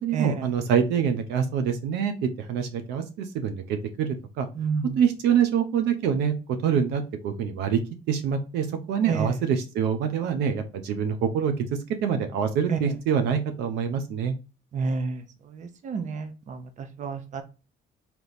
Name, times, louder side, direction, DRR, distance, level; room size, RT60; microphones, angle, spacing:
voice 1, 0.0-4.5 5.0-6.3 6.6-7.8 8.1-11.7 12.0-14.3, right 7 dB, 85° right, 8 dB, 0.6 m, -25 dB
voice 2, 14.7-15.2 15.8-16.6 17.0-17.4, right 5 dB, 45° right, 8 dB, 0.8 m, -28 dB
3.4 x 2.9 x 4.0 m, 0.31 s
cardioid pair, 110°, 17 cm